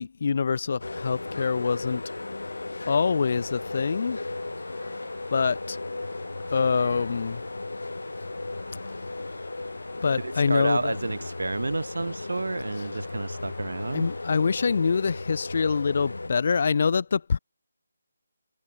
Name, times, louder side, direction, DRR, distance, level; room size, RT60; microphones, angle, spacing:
voice 1, 0.0-2.0 2.9-4.2 5.3-5.8 6.5-7.4 10.0-10.9 13.9-17.4, left 5 dB, 45° left, 0.5 m, -25 dB
sound 1, 0.8-16.3, left 2 dB, 65° left, 1.4 m, -36 dB
sound 2, 3.2-14.4, right 5 dB, 5° right, 3.7 m, -61 dB
voice 2, 10.2-14.1, right 3 dB, 60° right, 0.6 m, -30 dB
figure-of-eight pair, 150°, 0 cm